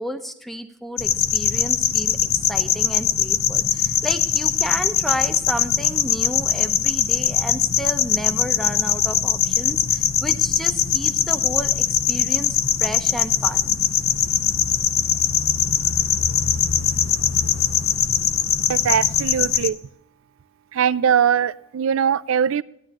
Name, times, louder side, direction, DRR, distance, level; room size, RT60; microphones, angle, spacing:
voice 1, 0.0-13.8, equal, ahead, 8 dB, 0.7 m, -32 dB
sound 1, 1.0-19.7, left 9 dB, 75° left, 0.6 m, -21 dB
voice 2, 18.7-19.8 20.7-22.6, right 8 dB, 70° right, 18 dB, 0.4 m, -21 dB
14.0 x 10.5 x 2.9 m, 0.77 s
head